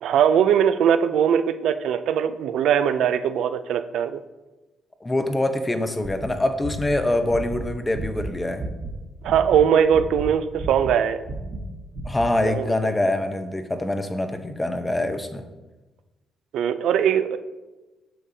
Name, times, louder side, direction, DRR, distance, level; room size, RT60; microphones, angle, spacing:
voice 1, 0.0-4.2 9.2-11.2 12.4-12.9 16.5-17.4, right 8 dB, 80° right, 10 dB, 0.4 m, -21 dB
voice 2, 5.0-8.6 12.0-15.4, left 1 dB, 15° left, 7 dB, 0.8 m, -24 dB
sound 1, 6.0-8.9 9.2-11.7 11.9-12.3, right 2 dB, 45° right, 1.3 m, -33 dB
8.8 x 6.5 x 2.7 m, 1.1 s
cardioid pair, 90°, 0 cm